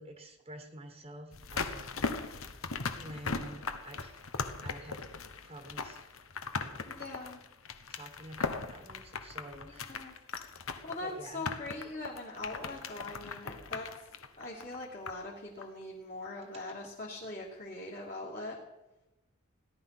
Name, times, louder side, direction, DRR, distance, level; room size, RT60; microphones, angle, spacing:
voice 1, 0.0-2.5 3.0-5.1 5.4-6.1 6.6-7.0 7.9-10.0 11.0-11.5 16.2-16.3 16.5-16.8, right 1 dB, 30° right, 5 dB, 1.3 m, -49 dB
sound 1, 1.3-15.3 15.6-15.7, left 4 dB, 90° left, 1.1 m, -39 dB
voice 2, 6.9-7.4 9.5-10.1 10.8-13.9 14.4-18.6, left 2 dB, 40° left, -4 dB, 2.6 m, -42 dB
18.0 x 11.0 x 6.0 m, 1.0 s
head